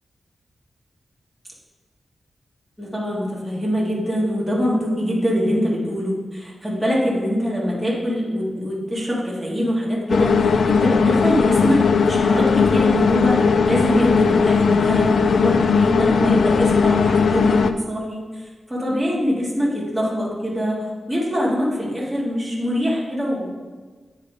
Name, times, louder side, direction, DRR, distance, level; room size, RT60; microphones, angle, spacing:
voice 1, 2.8-20.8 21.1-23.5, equal, 5° right, -6 dB, 1.9 m, -23 dB
sound 1, 10.1-17.7, left 5 dB, 70° left, 0.3 m, -18 dB
8.6 x 4.8 x 4.8 m, 1.4 s
wide cardioid pair, 155°, 0 cm